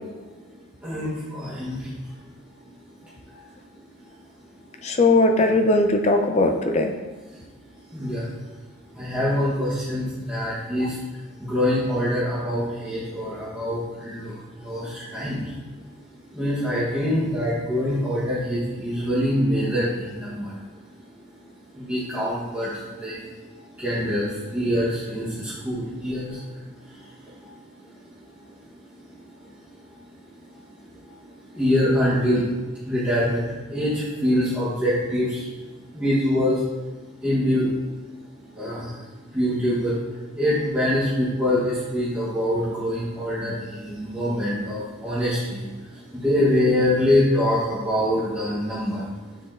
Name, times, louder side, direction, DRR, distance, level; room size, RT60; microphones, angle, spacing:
voice 1, 0.8-1.9 3.3-3.4 7.9-8.3 8.9-11.0 11.4-15.5 16.3-20.5 21.7-23.3 23.8-26.4 27.4-27.5 29.9-30.0 31.5-32.4 32.8-35.5 35.9-36.6 37.2-37.7 38.5-39.0 39.3-40.0 40.4-49.1, left 1 dB, 10° right, -11 dB, 1.3 m, -24 dB
voice 2, 4.8-6.9, left 2 dB, 30° left, 5 dB, 0.5 m, -19 dB
7.7 x 4.1 x 3.7 m, 1.3 s
head